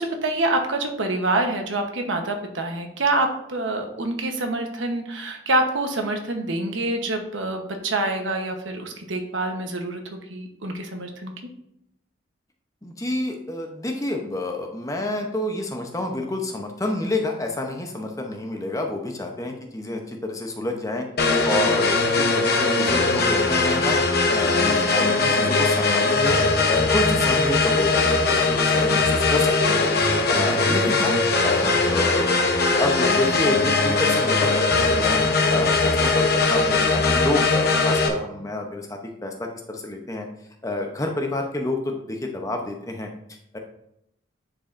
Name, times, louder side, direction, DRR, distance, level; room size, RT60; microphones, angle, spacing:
voice 1, 0.0-11.3, right 2 dB, 75° right, 4 dB, 1.1 m, -26 dB
voice 2, 12.8-24.0 24.3-26.4 26.7-29.8 30.3-31.1 31.4-35.2 35.5-40.3 40.6-43.1 43.5-43.6, left 2 dB, 15° left, 2 dB, 0.8 m, -28 dB
sound 1, 21.2-38.1, left 3 dB, 50° left, 0.9 m, -20 dB
10.0 x 4.6 x 2.6 m, 0.77 s
head